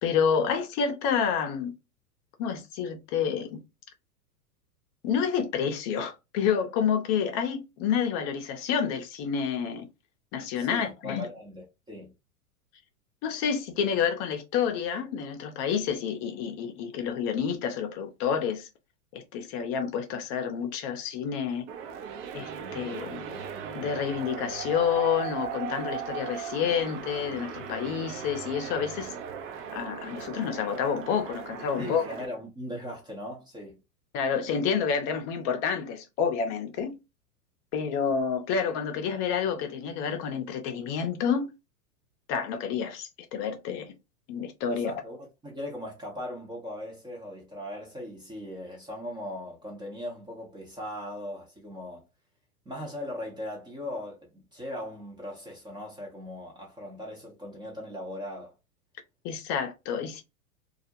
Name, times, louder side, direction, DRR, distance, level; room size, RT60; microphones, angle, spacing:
voice 1, 0.0-1.7 2.4-3.6 5.0-9.9 10.3-11.3 13.2-18.7 19.1-21.7 22.3-23.4 23.7-29.1 29.7-32.0 34.1-37.0 37.7-41.5 42.3-44.0 44.3-44.9 59.2-60.2, left 7 dB, 35° left, 0.6 m, -29 dB
voice 2, 10.6-12.1 31.8-33.8 44.7-52.1 52.7-58.5, left 1 dB, 10° right, 0.6 m, -39 dB
sound 1, 21.7-32.3, right 7 dB, 55° right, 0.7 m, -38 dB
2.4 x 2.1 x 2.7 m
hypercardioid pair, 115°, 45 cm